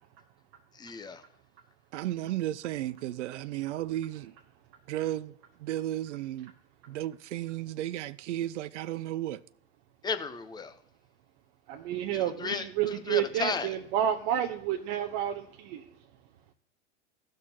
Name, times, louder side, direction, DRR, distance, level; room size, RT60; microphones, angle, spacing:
voice 1, 0.8-1.2 10.0-10.7 12.1-13.7, left 5 dB, 10° left, 0.8 m, -34 dB
voice 2, 1.9-4.3 4.9-5.3 5.6-6.5 6.9-9.4, right 13 dB, 70° right, 0.5 m, -34 dB
voice 3, 11.7-15.9, right 10 dB, 45° right, 0.8 m, -30 dB
17.0 x 6.4 x 2.8 m
hypercardioid pair, 100°, 37 cm